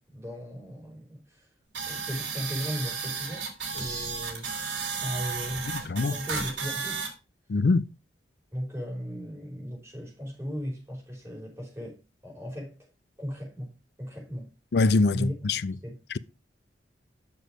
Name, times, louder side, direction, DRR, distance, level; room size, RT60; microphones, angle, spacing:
voice 1, 0.1-1.5 1.9-4.5 5.0-7.1 8.5-12.8 13.2-13.7 14.0-14.5 15.1-15.3 15.8-16.0, equal, 15° right, 5.0 m, -37 dB
sound 1, 1.7-7.1, right 5 dB, 85° right, 2.8 m, -33 dB
voice 2, 7.5-7.9 14.7-15.7, left 3 dB, 60° left, 0.5 m, -23 dB
7.1 x 6.4 x 4.9 m
head